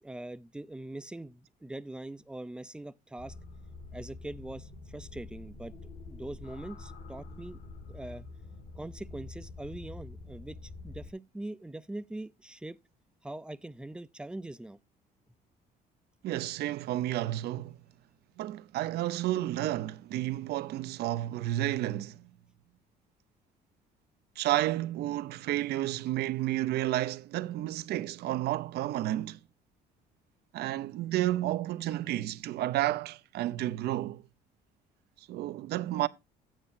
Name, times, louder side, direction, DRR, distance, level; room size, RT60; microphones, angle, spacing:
voice 1, 0.0-3.3 3.9-5.7 6.1-7.6 7.9-8.2 8.7-12.8 13.2-14.8, right 1 dB, 5° right, 0.5 m, -42 dB
sound 1, 3.2-11.1, left 3 dB, 55° left, 2.0 m, -46 dB
voice 2, 16.2-17.8 18.4-22.3 24.4-29.4 30.5-34.2 35.3-36.1, right 14 dB, 75° right, 0.7 m, -31 dB
12.5 x 9.0 x 2.6 m
cardioid pair, 110°, 17 cm